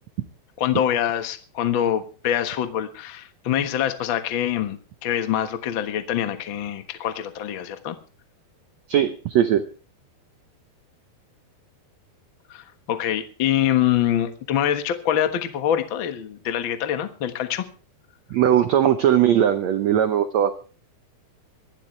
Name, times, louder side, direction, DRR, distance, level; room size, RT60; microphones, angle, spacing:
voice 1, 0.6-8.0 12.5-17.7, left 10 dB, 65° left, 8 dB, 1.2 m, -25 dB
voice 2, 8.9-9.6 18.3-20.6, right 10 dB, 85° right, 9 dB, 1.5 m, -19 dB
23.5 x 12.0 x 3.3 m, 0.36 s
omnidirectional pair, 4.4 m